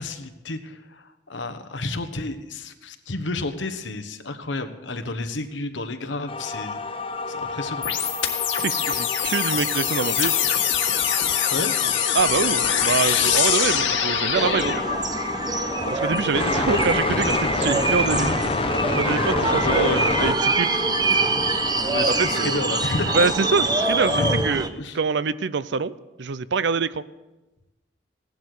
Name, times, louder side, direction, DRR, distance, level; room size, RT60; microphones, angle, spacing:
voice 1, 0.0-6.8 7.3-7.8 11.5-11.7 19.6-20.1 21.8-23.2 23.6-23.7 24.1-25.0, left 2 dB, 70° left, 9 dB, 1.2 m, -30 dB
sound 1, 6.3-24.4, left 3 dB, 30° left, 0.8 m, -29 dB
sound 2, 7.8-14.8, left 9 dB, 85° left, 2.0 m, -23 dB
voice 2, 8.6-10.4 12.1-14.8 15.9-18.4 19.0-20.8 21.1-21.3 21.9-22.7 23.1-24.7 24.9-27.0, right 5 dB, 65° right, 17 dB, 0.5 m, -25 dB
sound 3, 14.3-24.7, right 3 dB, 20° right, 0.9 m, -25 dB
17.0 x 12.0 x 6.6 m, 1.1 s
head